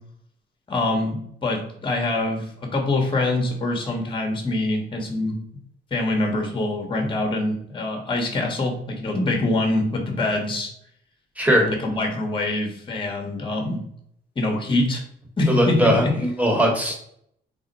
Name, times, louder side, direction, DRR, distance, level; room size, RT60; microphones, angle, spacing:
voice 1, 0.7-5.3 5.9-10.7 11.5-13.8 14.4-15.0 15.4-16.1, left 2 dB, 25° left, 2 dB, 0.8 m, -24 dB
voice 2, 11.4-11.7 15.5-16.9, equal, 5° right, 1 dB, 1.0 m, -20 dB
3.5 x 2.1 x 3.9 m, 0.69 s
cardioid pair, 90°, 20 cm